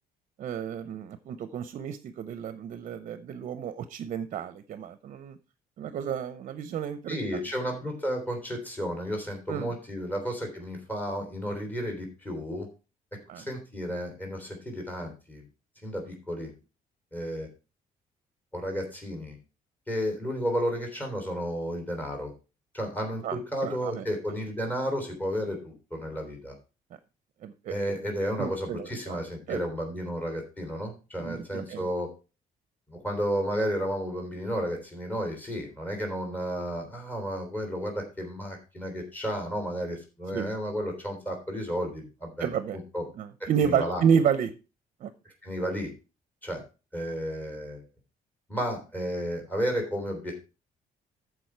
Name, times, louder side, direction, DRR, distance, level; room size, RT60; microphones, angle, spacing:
voice 1, 0.4-5.4 5.8-7.4 9.5-9.7 13.3-13.4 23.2-24.0 27.4-28.0 28.4-29.2 29.5-29.6 31.2-31.9 40.3-40.5 42.4-42.8 43.2-44.5 45.0-45.1, right 7 dB, 55° right, 12 dB, 0.7 m, -30 dB
voice 2, 7.1-12.7 13.3-15.4 15.8-16.5 17.1-17.5 18.5-19.4 19.9-22.3 22.7-26.6 27.7-32.1 32.9-42.5 42.9-43.0 43.4-44.0 45.4-45.9 46.4-46.6 46.9-47.8 48.5-50.4, equal, 10° left, 2 dB, 3.4 m, -32 dB
14.0 x 5.0 x 4.5 m, 0.31 s
cardioid pair, 160°, 15 cm